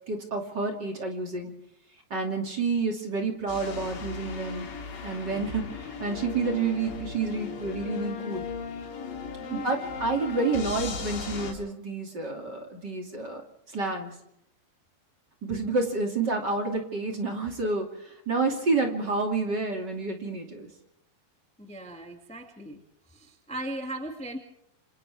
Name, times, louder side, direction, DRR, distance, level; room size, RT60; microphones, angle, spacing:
voice 1, 0.1-1.5 2.1-4.6 5.0-8.5 9.5-13.4 13.7-14.1 15.4-20.7, right 3 dB, 30° right, 2 dB, 2.5 m, -29 dB
sound 1, 3.5-11.5, left 5 dB, 75° left, 5.5 m, -37 dB
voice 2, 9.4-9.8 11.5-11.7 21.6-22.8 23.1-24.4, right 1 dB, 5° left, 2 dB, 0.6 m, -38 dB
28.0 x 27.0 x 3.6 m, 0.79 s
omnidirectional pair, 5.1 m